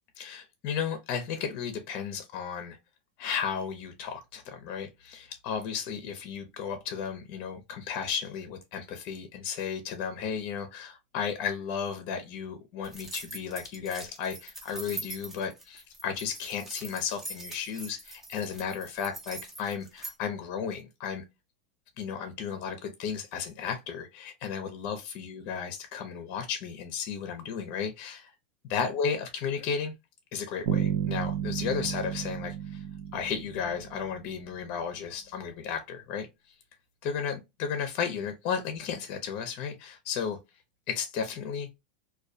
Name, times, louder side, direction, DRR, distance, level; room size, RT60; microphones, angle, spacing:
voice 1, 0.2-2.8 3.2-21.2 22.0-28.3 28.6-29.9 30.3-32.8 33.1-36.3 37.0-37.4 37.7-40.4 40.9-41.7, left 7 dB, 45° left, 0.6 m, -34 dB
sound 1, 12.8-20.1, right 2 dB, 5° right, 0.6 m, -42 dB
Bass guitar, 30.7-34.5, right 9 dB, 70° right, 0.4 m, -32 dB
2.2 x 2.2 x 2.5 m
supercardioid pair, 145°, 5 cm